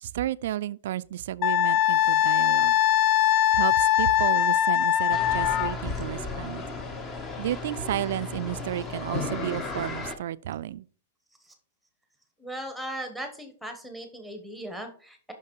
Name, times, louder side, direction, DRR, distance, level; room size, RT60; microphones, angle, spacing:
voice 1, 0.0-2.8 3.5-6.7 7.4-10.9, right 12 dB, 60° right, 0.4 m, -32 dB
Wind instrument woodwind instrument, 1.4-5.7, left 11 dB, 35° left, 0.3 m, -22 dB
sound 1, 5.1-10.2, left 3 dB, 15° left, 0.9 m, -34 dB
voice 2, 12.4-15.3, right 1 dB, ahead, 1.2 m, -38 dB
6.0 x 5.7 x 4.6 m
supercardioid pair, 170°, 0 cm